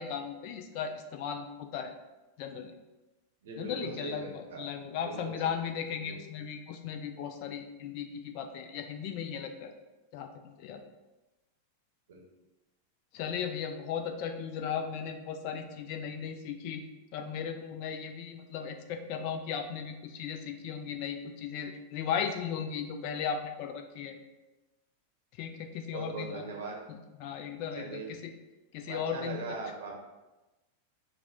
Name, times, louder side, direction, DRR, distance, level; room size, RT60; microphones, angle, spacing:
voice 1, 0.0-1.9 2.4-2.7 3.6-9.7 10.1-10.8 13.1-16.8 17.1-24.2 25.4-26.4 26.9-28.3 28.7-29.6, left 7 dB, 45° left, 6 dB, 0.4 m, -36 dB
voice 2, 3.4-4.6 5.0-5.5 6.0-6.2 12.1-12.2 25.9-26.8 27.7-28.1 28.9-29.9, right 3 dB, 60° right, 0 dB, 0.8 m, -40 dB
4.7 x 2.1 x 3.5 m, 1.1 s
figure-of-eight pair, 90°, 0 cm